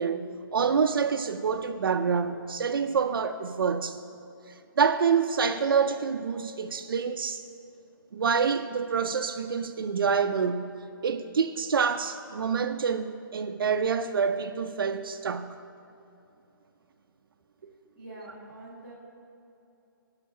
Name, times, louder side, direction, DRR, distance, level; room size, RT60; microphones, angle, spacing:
voice 1, 0.0-4.0 4.8-7.4 8.1-10.7 11.0-15.5 17.6-17.7, right 6 dB, 80° right, 7 dB, 0.5 m, -27 dB
voice 2, 17.8-18.9, right 2 dB, 5° left, -14 dB, 2.4 m, -45 dB
16.5 x 5.7 x 5.6 m, 2.8 s
hypercardioid pair, 165°, 12 cm